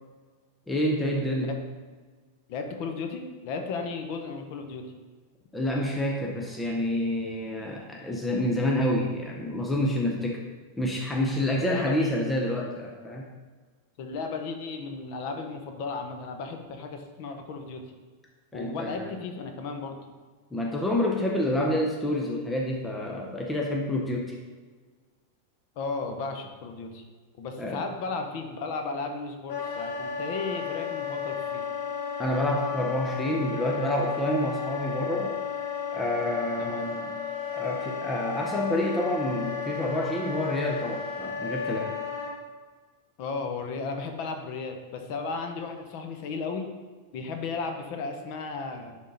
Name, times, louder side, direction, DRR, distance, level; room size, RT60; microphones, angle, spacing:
voice 1, 0.7-1.5 5.5-10.4 10.8-13.2 18.5-19.1 20.5-24.3 27.6-27.9 32.2-35.4 35.9-37.1 37.5-41.9, left 1 dB, 5° left, -1 dB, 0.6 m, -28 dB
voice 2, 2.5-4.9 11.6-12.2 14.0-17.9 18.5-20.0 25.8-27.0 27.4-31.6 36.6-36.8 43.2-46.7 47.1-49.0, left 4 dB, 40° left, 5 dB, 0.8 m, -35 dB
Wind instrument woodwind instrument, 29.5-42.3, left 6 dB, 65° left, 1.7 m, -33 dB
10.5 x 3.6 x 3.9 m, 1.4 s
supercardioid pair, 170°, 0 cm